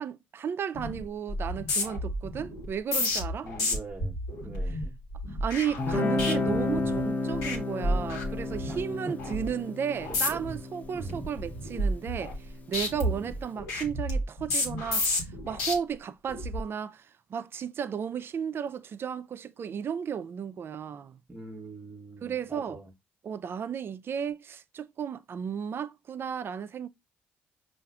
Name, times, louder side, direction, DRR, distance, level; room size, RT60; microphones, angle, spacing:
voice 1, 0.0-3.5 4.7-4.8 5.4-21.2 22.2-22.8 23.2-26.9, right 7 dB, 50° right, 0.4 m, -34 dB
sound 1, 0.7-1.0 1.3-7.0 7.3-7.6 7.8-8.8 9.2-9.5 10.0-10.6 11.0-12.5 12.7-15.7 16.3-16.6, left 1 dB, 85° left, 1.2 m, -31 dB
voice 2, 3.4-4.1 4.4-4.9 8.7-8.8 9.1-9.3 10.1-10.4 10.9-11.3 13.1-13.3 21.3-22.9, right 2 dB, 20° right, 0.9 m, -43 dB
Guitar, 5.8-12.9, left 3 dB, 35° left, 0.7 m, -32 dB
5.5 x 2.5 x 2.3 m
supercardioid pair, 65°, 5 cm